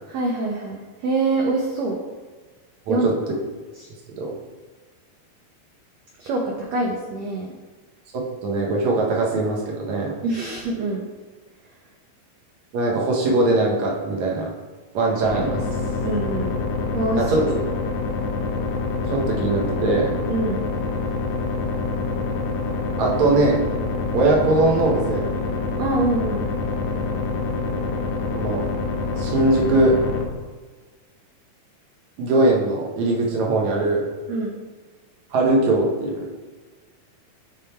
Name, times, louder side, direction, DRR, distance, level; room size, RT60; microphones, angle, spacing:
voice 1, 0.1-2.0 2.9-3.1 3.8-3.9 6.2-7.5 10.2-11.1 16.0-16.5 16.9-17.5 20.3-20.6 25.8-26.5 34.3-34.6, right 2 dB, 90° right, -1 dB, 1.5 m, -25 dB
voice 2, 8.1-10.1 12.7-14.5 14.9-15.6 17.2-17.5 19.1-20.2 23.0-23.6 24.1-25.3 28.3-28.6 29.2-30.0 32.2-34.1 35.3-36.3, right 2 dB, 65° right, -1 dB, 1.9 m, -21 dB
sound 1, 15.2-30.3, left 3 dB, 90° left, 1.5 m, -26 dB
8.9 x 3.9 x 4.3 m, 1.4 s
omnidirectional pair, 4.2 m